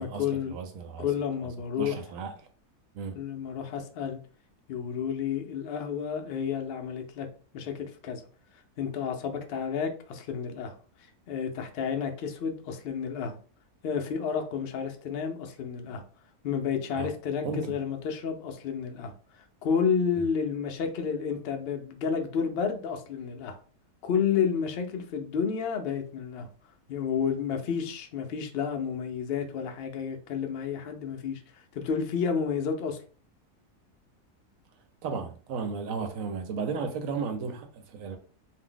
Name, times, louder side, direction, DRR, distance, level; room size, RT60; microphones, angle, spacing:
voice 1, 0.0-0.6 1.0-2.1 3.1-4.2 4.7-7.3 7.5-8.2 8.5-13.3 13.8-16.0 16.4-23.6 24.0-26.5 26.9-33.0, left 7 dB, 80° left, 0.5 m, -31 dB
voice 2, 0.5-1.1 1.8-2.3 2.9-3.2 17.0-17.1 17.4-17.8 20.2-20.3 35.0-38.2, right 5 dB, 70° right, 0.9 m, -34 dB
2.7 x 2.0 x 3.7 m
omnidirectional pair, 1.6 m